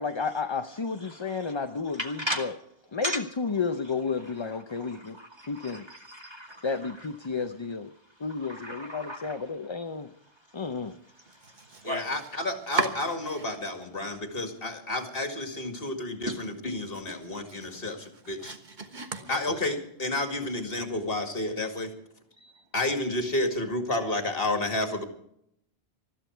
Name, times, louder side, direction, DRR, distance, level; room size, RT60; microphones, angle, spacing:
voice 1, 0.0-2.5 2.9-5.2 5.5-5.9 6.6-7.9 8.2-10.1 10.5-11.0 19.2-19.3, left 5 dB, 30° left, 7 dB, 0.6 m, -32 dB
voice 2, 1.0-1.6 1.8-2.5 3.0-3.2 4.2-7.1 8.1-9.5 10.5-10.6 11.2-12.1 16.3-16.4 18.9-19.3 22.4-22.6, right 1 dB, 25° right, 2 dB, 2.4 m, -38 dB
Domestic sounds home sounds, 11.3-13.8 14.1-14.9 15.3-15.4 15.8-15.9 16.3-19.9, right 3 dB, 45° right, 1.5 m, -38 dB
voice 3, 11.8-18.5 19.3-21.9 22.7-25.0, left 2 dB, 65° left, 5 dB, 2.4 m, -31 dB
20.5 x 13.5 x 4.5 m, 0.73 s
omnidirectional pair, 1.1 m